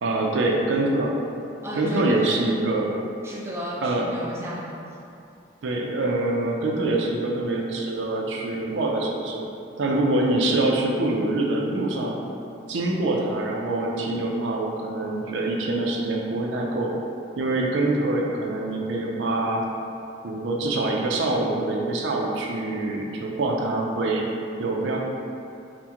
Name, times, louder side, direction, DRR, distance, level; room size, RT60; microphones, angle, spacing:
voice 1, 0.0-1.1 1.7-3.0 3.8-4.1 5.6-9.4 9.8-12.2 12.7-17.0 17.4-19.6 20.2-24.3 24.6-25.0, right 2 dB, 75° right, -1 dB, 0.4 m, -25 dB
voice 2, 1.6-2.4 3.2-4.8, left 1 dB, 15° right, -5 dB, 0.4 m, -31 dB
2.8 x 2.1 x 3.5 m, 2.6 s
head